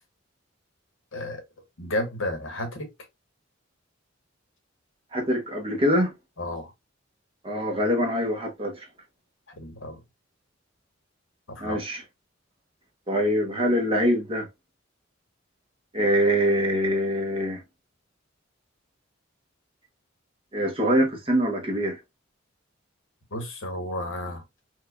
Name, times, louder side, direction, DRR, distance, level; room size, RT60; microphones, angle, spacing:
voice 1, 1.1-2.9 6.4-6.7 9.5-10.0 11.5-11.8 23.3-24.4, left 1 dB, 80° left, 1.1 m, -32 dB
voice 2, 5.1-6.1 7.4-8.9 11.6-12.0 13.1-14.5 15.9-17.6 20.5-22.0, equal, 25° right, 0.8 m, -24 dB
4.5 x 2.3 x 2.3 m
head